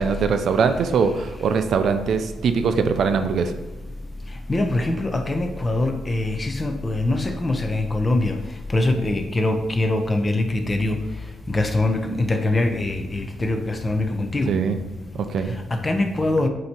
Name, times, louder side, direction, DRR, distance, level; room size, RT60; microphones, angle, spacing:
voice 1, 0.0-3.6 14.5-14.8 15.1-15.5, right 5 dB, 60° right, 8 dB, 0.5 m, -22 dB
voice 2, 4.5-8.4 8.7-11.0 11.5-14.5 15.7-16.5, left 2 dB, 20° left, 6 dB, 0.6 m, -23 dB
7.7 x 2.9 x 4.4 m, 1.0 s
cardioid pair, 120°, 0 cm